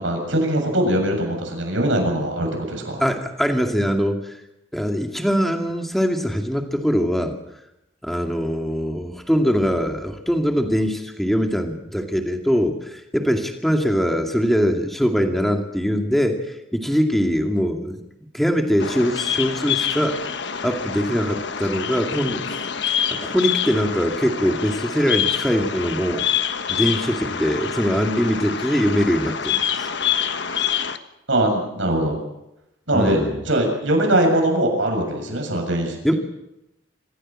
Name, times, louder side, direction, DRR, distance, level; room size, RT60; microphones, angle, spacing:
voice 1, 0.0-3.0 31.3-32.2 32.9-36.2, right 1 dB, 75° right, 3 dB, 7.3 m, -21 dB
voice 2, 3.0-4.3 4.7-7.3 8.0-18.0 18.3-20.2 20.6-22.6 22.9-26.2 26.7-30.1 32.9-33.4 36.0-36.1, equal, ahead, 3 dB, 2.4 m, -22 dB
Bird vocalization bird call bird song, 18.8-31.0, left 8 dB, 60° left, 1.3 m, -26 dB
26.0 x 15.5 x 7.6 m, 0.90 s
head